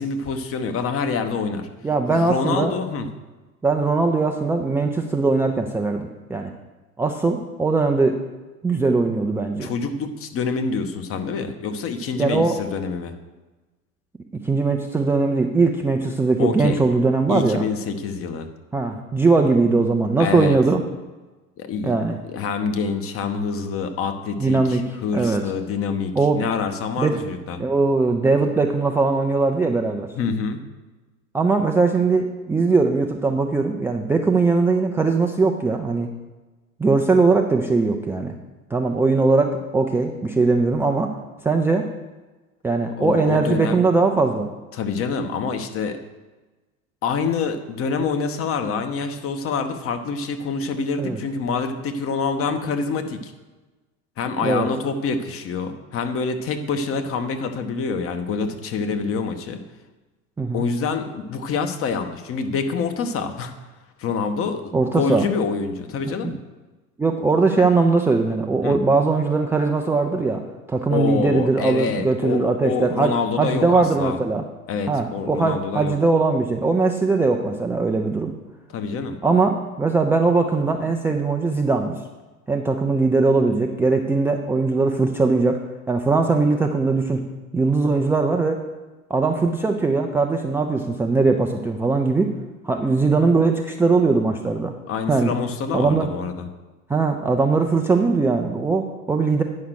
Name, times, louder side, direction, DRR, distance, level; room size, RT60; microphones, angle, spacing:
voice 1, 0.0-1.7 2.1-3.1 9.6-13.1 16.4-16.8 17.3-18.5 20.2-20.6 21.6-21.9 22.2-27.6 30.2-30.6 43.0-43.8 44.7-46.0 47.0-53.3 54.2-59.6 60.5-63.5 64.0-66.4 68.6-68.8 70.9-74.2 74.7-76.0 78.7-79.2 94.9-96.5, left 5 dB, 30° left, 8 dB, 1.0 m, -26 dB
voice 2, 1.8-2.7 3.6-6.5 7.0-8.2 8.6-9.7 12.2-12.6 14.4-17.6 18.7-20.8 21.8-22.2 24.4-25.4 26.2-26.4 27.0-27.2 27.6-30.1 31.3-36.1 36.8-38.3 38.7-41.1 41.4-41.9 42.6-44.5 51.0-51.2 54.4-54.7 60.4-60.6 64.7-65.3 66.1-66.3 67.0-70.4 70.7-74.4 74.9-78.3 79.2-82.0 82.5-85.6 85.9-87.2 87.5-88.6 89.1-92.3 92.6-94.7 95.1-95.3 95.7-96.1 96.9-99.4, right 3 dB, 5° right, 2 dB, 0.4 m, -20 dB
9.5 x 5.8 x 6.4 m, 1.2 s
figure-of-eight pair, 75°, 42 cm